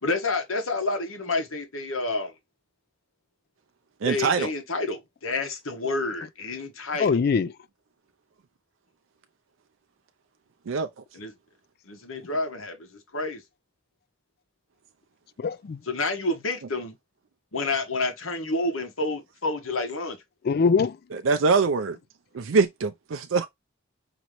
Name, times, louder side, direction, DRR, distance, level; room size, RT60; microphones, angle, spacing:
voice 1, 0.0-2.3 4.0-7.3 11.1-11.3 11.9-13.4 15.8-17.0 17.5-20.2, left 2 dB, 85° left, 1.2 m, -29 dB
voice 2, 4.0-4.5 10.7-11.0 21.1-22.0 22.3-23.5, right 4 dB, 75° right, 0.4 m, -23 dB
voice 3, 7.0-7.5 15.4-15.8 20.4-20.9, left 5 dB, 50° left, 0.3 m, -22 dB
5.2 x 2.9 x 3.0 m
head